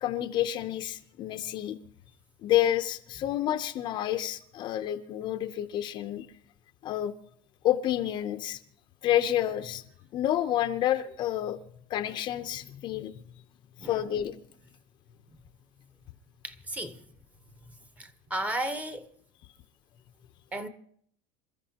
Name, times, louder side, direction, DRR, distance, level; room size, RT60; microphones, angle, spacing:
voice 1, 0.0-1.8 2.4-6.3 6.8-7.1 7.6-8.6 9.0-9.8 10.1-11.6 11.9-13.1 13.8-14.4, left 12 dB, 35° left, 0.7 m, -29 dB
voice 2, 16.4-17.0 18.0-19.1 20.5-20.7, right 1 dB, 10° right, 1.0 m, -34 dB
27.5 x 14.0 x 2.9 m
cardioid pair, 170°, 13 cm